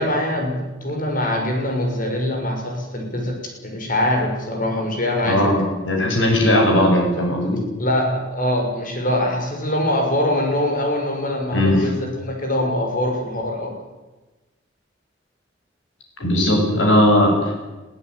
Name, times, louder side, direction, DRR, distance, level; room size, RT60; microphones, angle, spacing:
voice 1, 0.0-3.4 3.6-5.5 7.8-13.7, left 1 dB, 45° left, 2 dB, 6.6 m, -23 dB
voice 2, 5.3-7.6 11.5-11.9 16.2-17.7, left 1 dB, 90° left, 1 dB, 7.9 m, -18 dB
22.5 x 15.0 x 9.7 m, 1.1 s
head